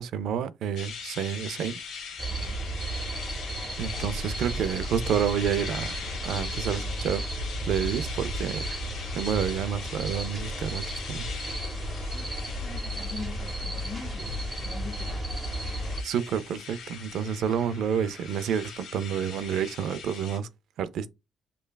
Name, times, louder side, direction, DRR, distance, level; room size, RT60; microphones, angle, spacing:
voice 1, 0.0-1.8 3.8-5.9 6.2-8.7 9.1-11.3 16.0-20.5 20.8-21.1, right 8 dB, 80° right, 0.3 m, -29 dB
sound 1, 0.8-20.4, left 6 dB, 85° left, 1.0 m, -41 dB
sound 2, 2.2-16.0, right 1 dB, 20° right, 0.7 m, -34 dB
voice 2, 2.3-2.6 12.1-14.4 14.6-15.2, left 4 dB, 45° left, 0.8 m, -42 dB
5.3 x 2.3 x 2.2 m
cardioid pair, 90°, 0 cm